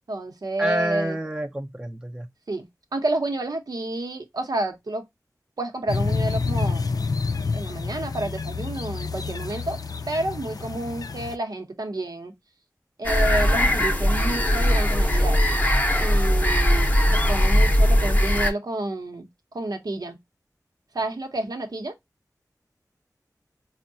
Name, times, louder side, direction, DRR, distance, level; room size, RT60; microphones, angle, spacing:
voice 1, 0.1-1.2 2.5-5.0 5.6-6.9 7.5-9.8 10.1-12.3 13.0-15.4 16.0-19.3 19.5-20.2 20.9-21.9, right 2 dB, 75° right, 0.8 m, -29 dB
voice 2, 0.6-2.3, right 1 dB, 15° right, 0.5 m, -28 dB
sound 1, 5.9-11.3, left 4 dB, 65° left, 0.4 m, -28 dB
sound 2, 13.0-18.5, equal, 25° left, 0.7 m, -20 dB
4.5 x 2.1 x 2.6 m
wide cardioid pair, 55°, 7 cm